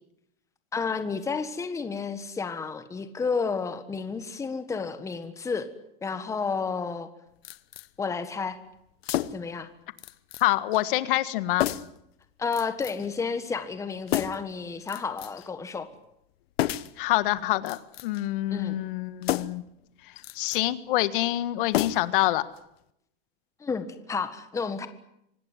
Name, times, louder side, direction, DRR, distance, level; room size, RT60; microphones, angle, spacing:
voice 1, 0.7-5.7 6.0-7.1 8.0-8.6 9.3-9.7 12.4-15.9 18.5-18.8 23.6-24.9, left 5 dB, 10° left, 10 dB, 1.4 m, -31 dB
sound 1, 7.4-7.9 9.0-9.5 10.0-10.5 10.7-10.8 11.6-12.0 12.5-13.1 14.1-14.5 14.9-15.5 16.6-17.0 17.6-18.3 19.2-19.7 20.2-20.6 21.7-22.3 22.6-22.7, left 13 dB, 90° left, 1.1 m, -31 dB
voice 2, 10.4-11.7 17.0-19.6 20.3-22.4, left 16 dB, 60° left, 14 dB, 1.6 m, -26 dB
25.0 x 19.0 x 9.6 m, 0.80 s
supercardioid pair, 160°, 30 cm